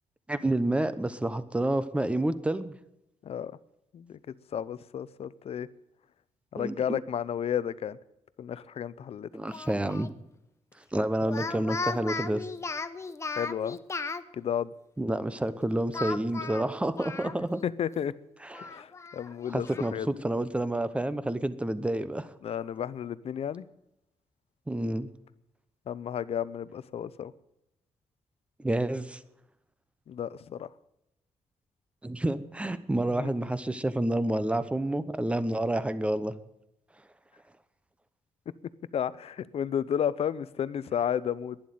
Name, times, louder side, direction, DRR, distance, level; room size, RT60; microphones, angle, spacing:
voice 1, 0.3-2.7 6.5-7.0 9.3-10.1 10.9-12.5 15.0-17.6 18.4-18.7 19.5-22.3 24.7-25.1 28.6-29.2 32.0-36.3, right 1 dB, 10° right, 13 dB, 0.9 m, -29 dB
voice 2, 3.2-3.6 3.9-4.2 4.5-5.7 6.5-8.0 8.4-9.3 11.5-11.6 13.4-13.8 14.3-14.7 17.6-18.1 18.6-20.1 22.4-23.7 25.9-27.3 30.1-30.7 33.1-33.3 38.9-41.6, left 9 dB, 60° left, 17 dB, 0.7 m, -32 dB
Speech, 9.5-10.1 11.2-14.2 15.9-17.7 18.0-18.1 18.5-19.9, left 4 dB, 25° left, 0.8 m, -36 dB
11.5 x 10.5 x 9.3 m, 0.85 s
cardioid pair, 125°, 12 cm